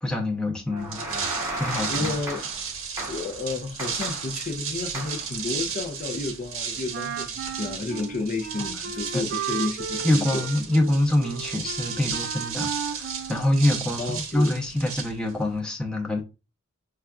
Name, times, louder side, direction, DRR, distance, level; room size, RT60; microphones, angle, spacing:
voice 1, 0.0-1.3 1.6-2.2 8.6-8.8 9.1-9.3 10.0-16.2, left 1 dB, 5° left, 0.7 m, -25 dB
sound 1, 0.7-2.7 3.0-3.4 3.8-4.4 4.9-5.3, right 1 dB, 15° right, 1.2 m, -34 dB
sound 2, 0.8-15.6, right 6 dB, 65° right, 0.8 m, -34 dB
voice 2, 1.9-2.4 3.1-10.4 14.0-14.5, left 3 dB, 40° left, 0.5 m, -31 dB
Wind instrument woodwind instrument, 6.9-14.1, right 7 dB, 50° right, 0.4 m, -35 dB
5.5 x 2.3 x 2.3 m
head